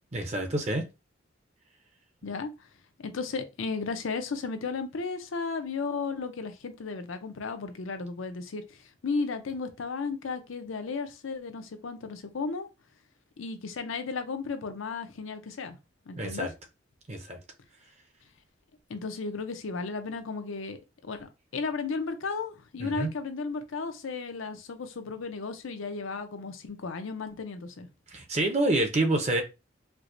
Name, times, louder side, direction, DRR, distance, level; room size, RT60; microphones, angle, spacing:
voice 1, 0.1-0.8 16.1-16.5 17.1-17.4 22.8-23.1 28.1-29.4, right 2 dB, 35° right, 0.6 m, -27 dB
voice 2, 3.0-12.7 13.4-15.8 16.1-16.5 18.9-27.9, left 4 dB, 90° left, 0.6 m, -34 dB
4.5 x 2.1 x 2.5 m
head